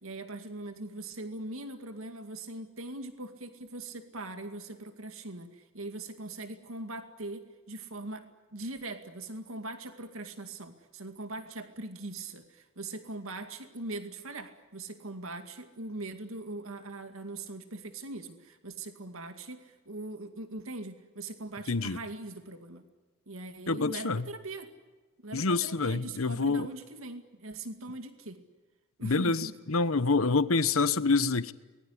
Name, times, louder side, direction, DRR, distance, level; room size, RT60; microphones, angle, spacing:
voice 1, 0.0-8.3 8.5-22.8 23.3-24.7 25.2-28.4 29.0-29.6, right 2 dB, 85° right, 2.2 m, -41 dB
voice 2, 21.7-22.0 23.7-24.3 25.3-26.7 29.0-31.5, left 3 dB, 85° left, 1.1 m, -27 dB
24.5 x 21.0 x 9.9 m
head